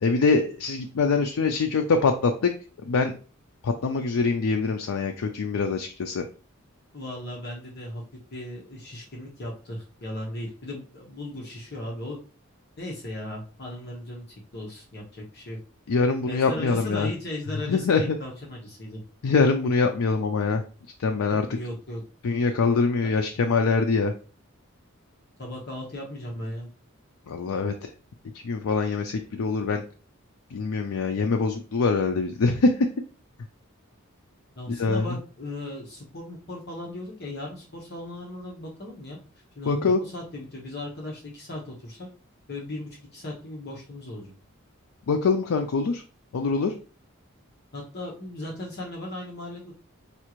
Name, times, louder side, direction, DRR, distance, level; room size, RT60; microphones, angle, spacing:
voice 1, 0.0-2.5 2.8-3.2 3.6-6.2 15.9-17.1 17.7-18.2 19.2-20.6 21.0-21.5 22.2-24.1 27.3-27.9 28.3-29.8 30.5-32.9 34.7-35.1 39.7-40.0 45.1-46.0 46.3-46.7, left 4 dB, 85° left, 5 dB, 0.4 m, -24 dB
voice 2, 6.9-8.0 8.3-12.2 12.8-14.2 14.5-15.6 16.3-19.0 21.3-22.0 25.4-26.7 34.5-39.2 39.6-42.1 42.5-44.3 47.7-49.8, left 1 dB, 50° left, -2 dB, 1.1 m, -37 dB
5.4 x 2.4 x 3.0 m, 0.37 s
head